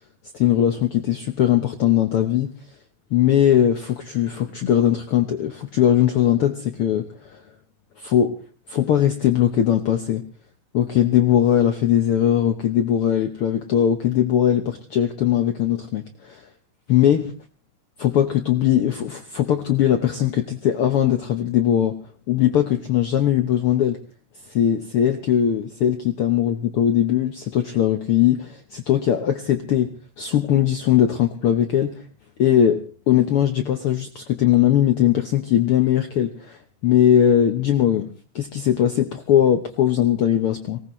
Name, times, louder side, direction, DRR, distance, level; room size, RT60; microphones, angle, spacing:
voice 1, 0.3-2.5 3.1-7.1 8.0-8.4 8.7-10.2 10.7-16.4 16.9-17.3 18.0-22.0 22.3-24.0 24.5-29.9 30.2-32.0 32.4-38.1 38.3-40.8, left 10 dB, 75° left, 7 dB, 1.3 m, -20 dB
23.5 x 18.5 x 3.1 m, 0.35 s
omnidirectional pair, 3.8 m